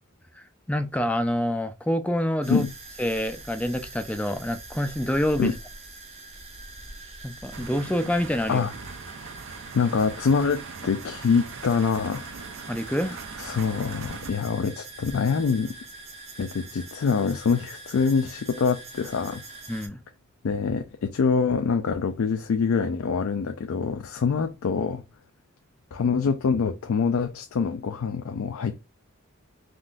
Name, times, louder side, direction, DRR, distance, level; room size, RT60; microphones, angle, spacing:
voice 1, 0.4-2.7 3.0-5.5 7.2-8.7 12.7-13.2 19.7-20.0, left 1 dB, 5° left, 0.3 m, -27 dB
sound 1, 2.4-19.9, right 2 dB, 30° right, 0.8 m, -44 dB
sound 2, 7.5-14.3, right 5 dB, 65° right, 0.5 m, -41 dB
voice 2, 9.7-12.3 13.4-15.8 16.4-19.4 20.4-25.0 25.9-28.8, left 5 dB, 80° left, 0.4 m, -25 dB
3.6 x 2.5 x 2.3 m
head